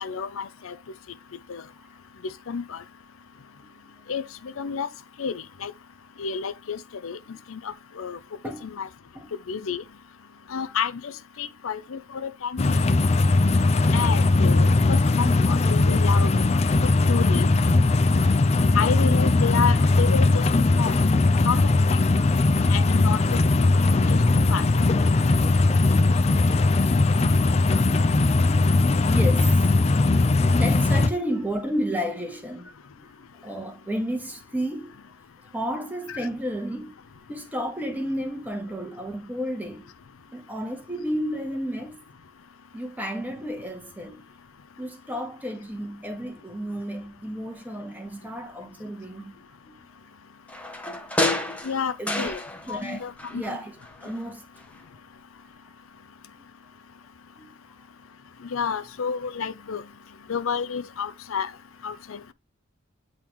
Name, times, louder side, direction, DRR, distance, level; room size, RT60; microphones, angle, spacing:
voice 1, 0.0-0.7 1.5-1.6 2.5-2.8 4.1-4.9 5.2-5.7 6.2-7.2 7.5-8.2 8.6-8.9 9.5-9.8 10.5-11.1 11.4-12.8 13.9-16.3 17.1-17.5 18.7-20.4 20.8-20.9 21.4-21.6 21.9-22.0 22.7-23.7 24.1-24.2 24.5-24.9 36.1-36.2 51.6-52.4 52.7-53.6 58.5-59.8 60.3-61.5 61.8-62.3, left 6 dB, 90° left, 0.6 m, -30 dB
sound 1, 12.6-31.1, left 2 dB, 30° left, 0.4 m, -19 dB
voice 2, 25.8-26.7 27.5-32.9 33.4-35.0 35.5-36.9 37.3-39.9 40.3-42.0 42.7-44.2 44.8-49.3 49.6-49.8 52.0-52.3 52.6-54.4 56.4-56.5 57.4-57.5 58.8-58.9, equal, 10° right, 1.3 m, -33 dB
sound 2, 50.5-52.9 53.2-54.3 54.6-54.7, left 1 dB, 5° left, 0.8 m, -30 dB
8.6 x 3.8 x 3.0 m
head